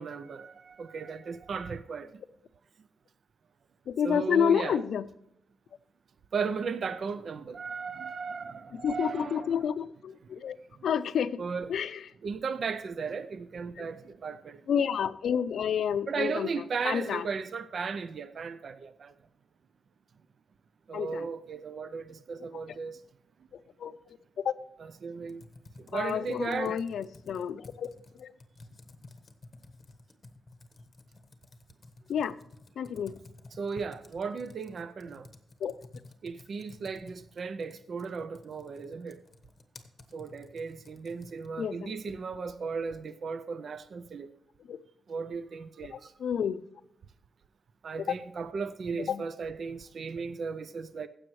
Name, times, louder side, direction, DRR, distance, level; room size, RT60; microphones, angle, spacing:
voice 1, 0.0-2.1 4.0-4.8 6.3-9.7 10.8-10.9 11.4-11.7 12.2-14.6 16.1-19.1 20.9-23.0 24.8-25.4 25.8-26.7 33.5-35.3 36.2-39.2 40.1-44.3 45.1-46.1 47.8-51.1, right 5 dB, 50° right, 0.4 m, -36 dB
voice 2, 3.9-5.1 8.8-10.6 10.8-11.4 11.7-12.0 13.8-13.9 14.7-16.5 16.8-17.3 20.9-21.3 23.8-24.0 24.4-24.5 25.9-27.9 28.2-28.3 32.1-32.4 32.8-33.2 35.6-35.8 41.6-42.0 44.7-44.8 45.9-46.6 48.9-49.2, left 8 dB, 75° left, 0.4 m, -29 dB
Computer keyboard, 25.2-41.6, left 2 dB, 30° left, 1.1 m, -53 dB
15.5 x 7.7 x 3.1 m
wide cardioid pair, 155°, 0 cm